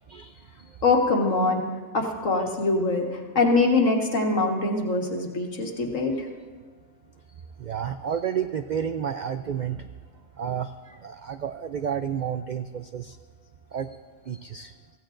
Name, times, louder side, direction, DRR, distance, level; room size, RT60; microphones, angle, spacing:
voice 1, 0.1-0.8 7.6-9.9 10.4-13.2 13.7-14.0 14.3-14.7, right 8 dB, 80° right, 9 dB, 0.4 m, -31 dB
voice 2, 0.8-1.6 1.9-6.3, left 3 dB, 75° left, 1 dB, 1.9 m, -23 dB
24.0 x 15.5 x 2.6 m, 1.5 s
omnidirectional pair, 1.3 m